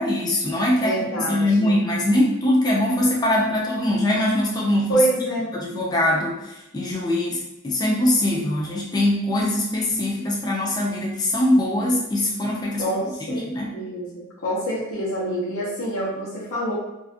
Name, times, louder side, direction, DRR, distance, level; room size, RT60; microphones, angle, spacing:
voice 1, 0.0-5.0 5.5-12.9 13.3-13.8, left 1 dB, 20° left, -3 dB, 0.4 m, -22 dB
voice 2, 0.8-1.7 4.9-5.5 12.8-13.4 13.7-16.7, right 1 dB, 80° left, -10 dB, 0.8 m, -26 dB
2.5 x 2.4 x 2.4 m, 0.93 s
head